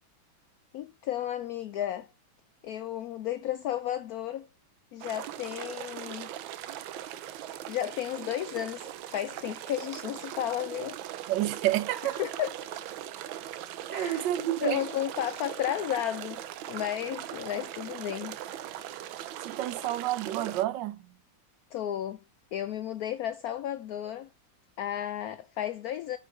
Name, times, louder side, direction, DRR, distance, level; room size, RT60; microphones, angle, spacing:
voice 1, 0.7-2.1 2.6-4.5 4.9-6.3 7.7-11.0 12.2-12.7 13.9-14.3 14.6-16.4 16.7-18.4 21.7-22.2 22.5-24.3 24.8-26.2, left 11 dB, 90° left, 0.8 m, -33 dB
sound 1, 5.0-20.6, right 11 dB, 90° right, 1.4 m, -40 dB
voice 2, 11.3-12.2 13.9-14.8 19.4-21.0, right 13 dB, 70° right, 1.3 m, -29 dB
5.5 x 5.0 x 5.4 m
omnidirectional pair, 2.1 m